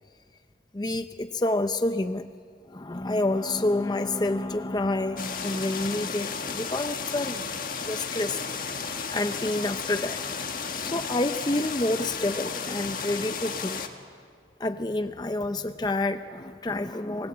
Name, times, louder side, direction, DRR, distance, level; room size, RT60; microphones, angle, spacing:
voice 1, 0.7-2.3 2.7-7.4 7.8-8.4 8.7-10.3 10.7-13.8 14.6-17.3, left 2 dB, 25° left, 9 dB, 0.6 m, -28 dB
sound 1, 5.2-13.9, left 5 dB, 50° left, 1.6 m, -33 dB
28.0 x 19.0 x 8.6 m, 2.1 s
head